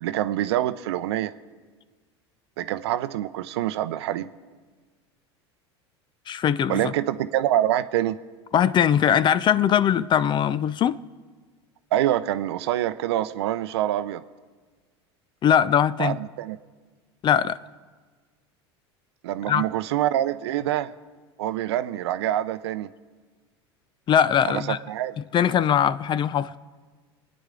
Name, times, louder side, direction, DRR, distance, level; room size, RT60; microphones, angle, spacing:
voice 1, 0.0-1.3 2.6-4.3 6.7-8.2 11.9-14.2 16.0-16.6 19.2-20.9 21.4-22.9 24.5-25.1, right 12 dB, 75° right, 0.6 m, -25 dB
voice 2, 6.3-6.9 8.5-11.0 15.4-16.2 17.2-17.6 19.5-19.6 24.1-24.8 25.3-26.5, left 9 dB, 35° left, 0.5 m, -21 dB
27.0 x 9.7 x 3.8 m
hypercardioid pair, 80°, 14 cm